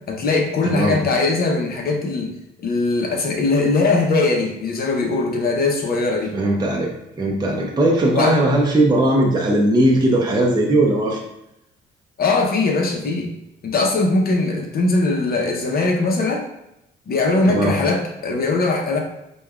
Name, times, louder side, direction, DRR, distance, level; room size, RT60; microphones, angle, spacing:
voice 1, 0.0-2.4 2.6-6.4 7.6-7.7 8.1-8.4 12.2-13.3 13.6-16.4 17.1-19.0, left 3 dB, 50° left, 1 dB, 0.8 m, -20 dB
voice 2, 0.6-1.0 6.3-6.9 7.2-11.2 17.5-17.8, right 1 dB, 20° right, -2 dB, 0.6 m, -18 dB
5.2 x 2.3 x 2.4 m, 0.86 s
cardioid pair, 90°, 20 cm